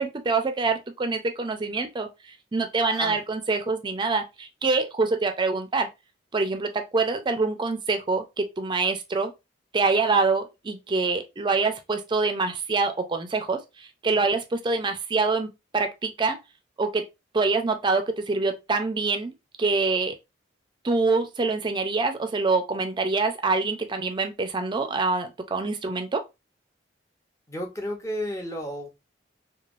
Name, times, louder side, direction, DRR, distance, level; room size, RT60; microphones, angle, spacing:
voice 1, 0.0-2.1 2.5-5.9 6.3-9.3 9.7-16.4 16.8-17.1 17.3-20.2 20.8-26.2, right 3 dB, 25° right, 0.4 m, -25 dB
voice 2, 2.8-3.2 27.5-29.1, equal, 15° left, 0.7 m, -33 dB
3.1 x 2.3 x 2.4 m
head